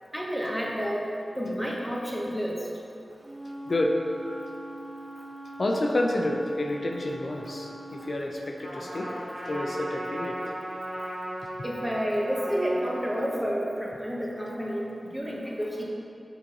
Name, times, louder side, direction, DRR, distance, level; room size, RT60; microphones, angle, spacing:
voice 1, 0.1-1.1 1.4-2.7 11.6-15.8, equal, 5° right, -3 dB, 1.0 m, -30 dB
Wind instrument woodwind instrument, 3.2-8.2, right 1 dB, 45° right, 0.9 m, -42 dB
voice 2, 3.7-4.0 5.6-9.1 9.5-10.4, left 1 dB, 55° left, 1 dB, 0.4 m, -29 dB
Trumpet, 8.6-13.3, right 1 dB, 75° right, 1.4 m, -36 dB
5.9 x 3.9 x 5.5 m, 2.6 s
wide cardioid pair, 90°, 0 cm